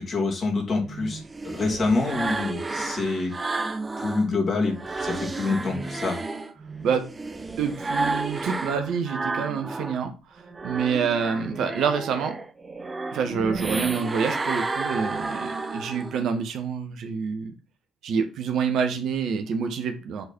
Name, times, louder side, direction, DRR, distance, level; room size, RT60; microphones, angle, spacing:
voice 1, 0.0-3.3 4.0-6.2, left 3 dB, 45° left, 0 dB, 2.6 m, -26 dB
sound 1, 0.8-4.3 4.6-10.0 10.4-16.3, right 3 dB, 30° right, 1.0 m, -31 dB
voice 2, 7.6-12.4 13.1-17.5 18.0-20.2, right 6 dB, 60° right, 7 dB, 1.0 m, -27 dB
7.9 x 4.1 x 4.4 m, 0.33 s
figure-of-eight pair, 40°, 0 cm